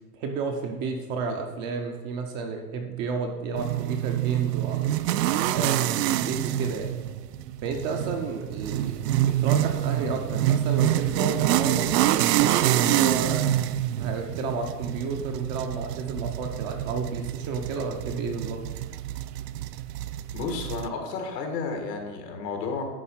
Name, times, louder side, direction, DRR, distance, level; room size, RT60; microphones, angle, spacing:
voice 1, 0.1-5.0 5.5-7.0 7.6-13.5 14.0-18.6, right 4 dB, 25° right, 3 dB, 0.4 m, -31 dB
sound 1, 3.6-20.9, right 13 dB, 80° right, 0.6 m, -26 dB
voice 2, 20.3-22.8, left 4 dB, 85° left, 4 dB, 1.9 m, -32 dB
10.0 x 3.7 x 5.6 m, 1.3 s
supercardioid pair, 145°, 48 cm